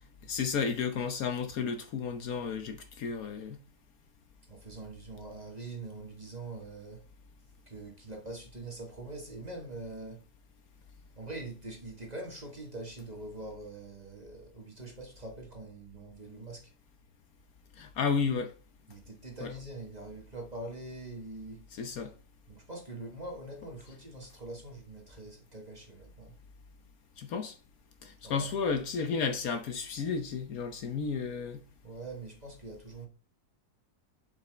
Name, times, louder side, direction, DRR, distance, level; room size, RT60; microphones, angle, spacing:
voice 1, 0.3-3.6 17.8-18.5 19.4-19.5 21.7-22.1 27.2-27.5 28.0-31.6, left 5 dB, 65° left, 1.1 m, -32 dB
voice 2, 4.5-7.1 7.7-10.2 11.1-16.7 18.9-21.6 22.5-26.4 28.2-28.5 31.8-33.1, right 2 dB, 30° right, 1.2 m, -43 dB
6.9 x 5.3 x 3.3 m
omnidirectional pair, 1.8 m